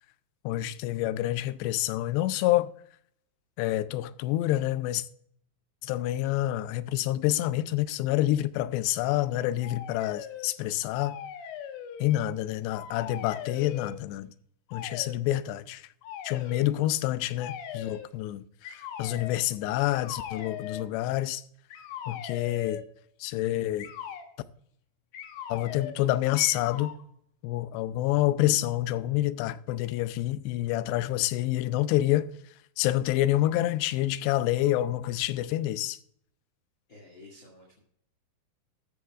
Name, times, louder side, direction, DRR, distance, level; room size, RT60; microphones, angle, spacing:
voice 1, 0.4-2.7 3.6-5.1 5.8-11.2 12.0-14.3 14.7-15.9 16.2-21.4 22.1-22.8 23.2-23.9 25.5-26.9 27.4-32.3 32.8-36.0, left 14 dB, 90° left, 2.7 m, -27 dB
sound 1, 9.6-10.5 10.9-12.4 12.7-14.0 14.7-15.2 16.0-16.7 17.4-18.1 18.6-19.4 19.9-20.9 21.7-22.9 23.8-24.3 25.1-26.0 26.4-27.0, left 9 dB, 70° left, 2.5 m, -40 dB
voice 2, 36.9-37.8, left 2 dB, 35° left, 2.2 m, -51 dB
14.0 x 12.5 x 2.4 m
omnidirectional pair, 4.7 m